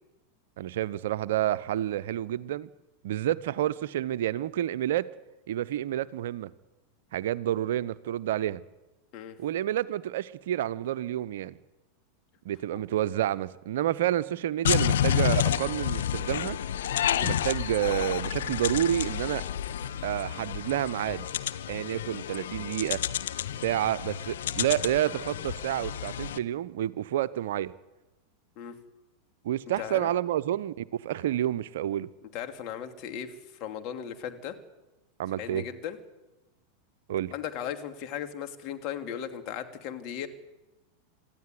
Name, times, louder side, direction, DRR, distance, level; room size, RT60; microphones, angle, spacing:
voice 1, 0.6-2.7 3.0-5.1 5.5-6.5 7.1-8.6 9.4-11.6 12.4-16.6 17.2-19.4 20.0-21.3 21.7-23.0 23.6-27.7 29.4-32.1 35.2-35.6 37.1-37.3, right 12 dB, 55° right, 16 dB, 0.8 m, -29 dB
sound 1, 14.6-26.4, left 10 dB, 60° left, 1.0 m, -30 dB
voice 2, 29.8-30.1 32.3-34.6 35.4-36.0 37.3-40.3, left 9 dB, 40° left, 6 dB, 2.8 m, -37 dB
26.0 x 14.0 x 9.4 m, 1.0 s
figure-of-eight pair, 90°, 0 cm